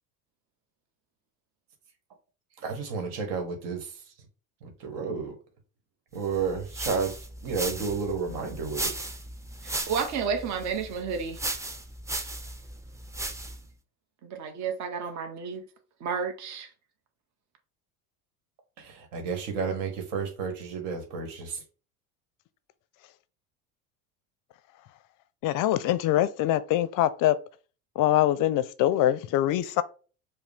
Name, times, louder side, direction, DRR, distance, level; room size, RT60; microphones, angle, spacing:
voice 1, 2.6-3.8 4.8-5.3 6.1-7.1 7.4-8.9 19.1-21.6, right 5 dB, 65° right, 1.3 m, -31 dB
sound 1, 6.3-13.7, right 2 dB, 5° right, 0.4 m, -36 dB
voice 2, 9.6-11.4 14.2-15.6 16.0-16.7, right 6 dB, 40° right, 0.7 m, -31 dB
voice 3, 25.4-27.4 28.0-29.8, left 13 dB, 50° left, 0.5 m, -24 dB
4.9 x 2.0 x 3.3 m
hypercardioid pair, 80°, 43 cm